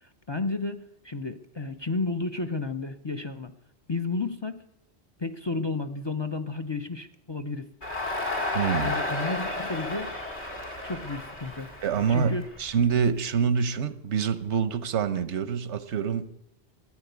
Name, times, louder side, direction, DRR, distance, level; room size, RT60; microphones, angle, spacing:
voice 1, 0.0-3.5 3.9-4.6 5.2-7.7 8.8-10.1 10.8-11.7 12.1-12.5, left 3 dB, 30° left, 0.6 m, -32 dB
Crowd, 7.8-13.0, left 2 dB, 75° left, 2.5 m, -32 dB
voice 2, 8.5-8.9 11.8-16.3, right 6 dB, 85° right, 1.2 m, -26 dB
14.0 x 9.1 x 8.1 m
omnidirectional pair, 1.1 m